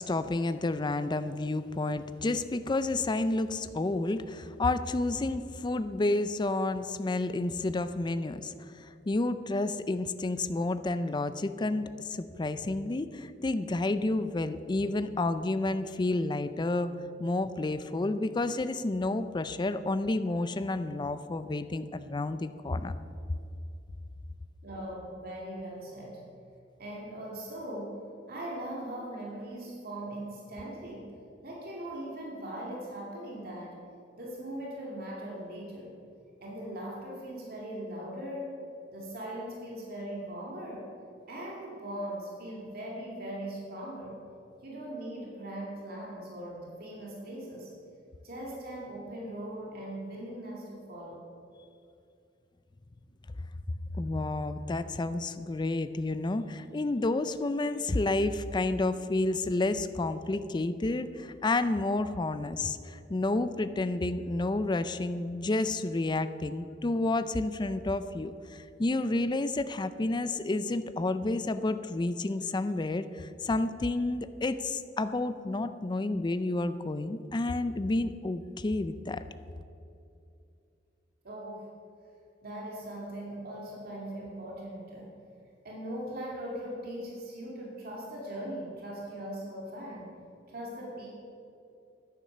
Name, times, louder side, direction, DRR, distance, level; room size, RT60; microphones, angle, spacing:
voice 1, 0.0-16.9 17.2-23.0 53.9-79.2, left 2 dB, 25° left, 12 dB, 0.4 m, -30 dB
voice 2, 24.6-26.2 26.8-28.0 28.3-31.1 31.4-33.8 34.2-35.9 36.4-38.6 38.9-40.9 41.3-44.1 44.6-47.7 48.2-51.2 81.2-81.7 82.4-85.1 85.6-90.2 90.5-91.1, right 1 dB, 55° right, -3 dB, 2.3 m, -40 dB
10.5 x 9.4 x 6.8 m, 2.6 s
head